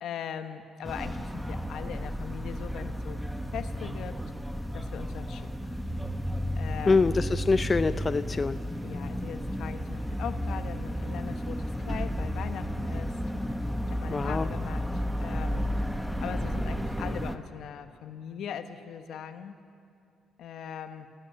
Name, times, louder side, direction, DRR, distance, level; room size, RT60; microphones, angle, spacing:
voice 1, 0.0-3.2 3.5-4.2 4.7-6.0 6.5-7.1 8.8-13.2 13.4-15.6 16.2-19.6 20.4-21.1, left 8 dB, 75° left, 8 dB, 1.3 m, -40 dB
sound 1, 0.8-17.4, equal, ahead, 1.1 m, -33 dB
voice 2, 6.9-8.6 14.1-14.5, left 4 dB, 30° left, 11 dB, 0.5 m, -25 dB
29.0 x 16.0 x 6.7 m, 2.4 s
cardioid pair, 90°, 0 cm